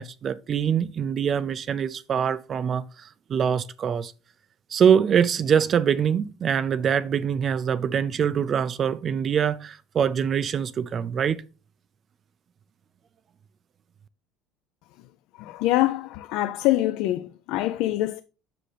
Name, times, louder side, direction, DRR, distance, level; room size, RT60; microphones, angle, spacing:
voice 1, 0.0-4.1 4.7-11.4, right 7 dB, 30° right, 0.3 m, -24 dB
voice 2, 15.3-18.2, left 15 dB, 60° left, 0.3 m, -25 dB
7.6 x 6.4 x 3.3 m
cardioid pair, 170°, 0 cm